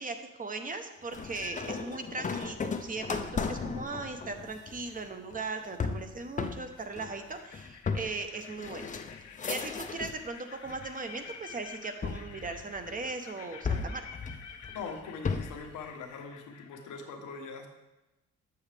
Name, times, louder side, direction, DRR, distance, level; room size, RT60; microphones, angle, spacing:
voice 1, 0.0-8.9 9.5-14.0, right 3 dB, 25° right, 7 dB, 0.8 m, -38 dB
sound 1, 1.1-10.3 10.7-11.3 12.0-13.1 13.6-15.7, left 5 dB, 25° left, 0.5 m, -36 dB
sound 2, 4.2-4.6 6.1-6.2 6.6-17.1, left 7 dB, 65° left, 0.8 m, -50 dB
voice 2, 14.7-17.7, left 5 dB, 85° left, 3 dB, 1.1 m, -42 dB
7.1 x 7.1 x 3.3 m, 1.0 s
cardioid pair, 90°, 30 cm